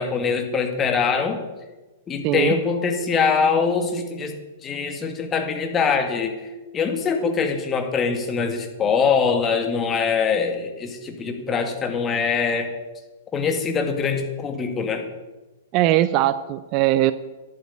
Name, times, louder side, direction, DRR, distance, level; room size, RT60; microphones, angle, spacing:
voice 1, 0.0-1.4 2.1-4.3 4.6-6.3 6.7-12.7 13.3-15.0, left 5 dB, 20° left, 5 dB, 2.2 m, -23 dB
voice 2, 2.2-2.5 15.7-17.1, right 14 dB, 40° right, 14 dB, 0.6 m, -20 dB
11.0 x 9.1 x 8.5 m, 1.2 s
figure-of-eight pair, 105°, 0 cm